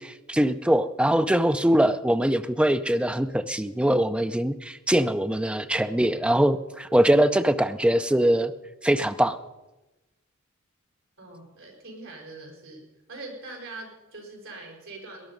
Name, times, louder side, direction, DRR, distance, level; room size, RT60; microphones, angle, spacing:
voice 1, 0.0-8.5 8.8-9.4, right 1 dB, 5° right, 10 dB, 0.5 m, -22 dB
voice 2, 11.2-12.8 13.1-15.3, right 2 dB, 65° right, 0 dB, 4.9 m, -42 dB
19.5 x 11.0 x 5.3 m, 1.0 s
head